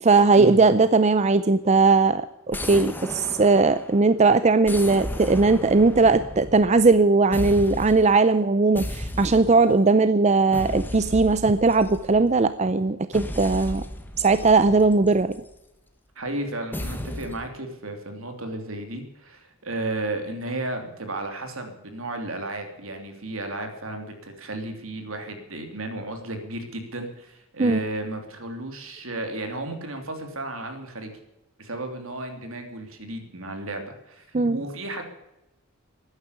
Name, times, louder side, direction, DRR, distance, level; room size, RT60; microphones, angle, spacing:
voice 1, 0.0-13.8 14.2-15.4 27.6-27.8 34.3-34.6, right 3 dB, 30° right, 13 dB, 0.5 m, -19 dB
sound 1, 2.5-4.1 4.6-7.0 7.3-8.2 8.7-9.8 10.5-12.4 13.1-15.5 16.7-17.5, left 1 dB, 10° left, 1.3 m, -35 dB
voice 2, 16.1-31.2 31.6-35.0, right 2 dB, 75° right, 5 dB, 3.1 m, -33 dB
13.5 x 9.7 x 9.9 m, 0.90 s
head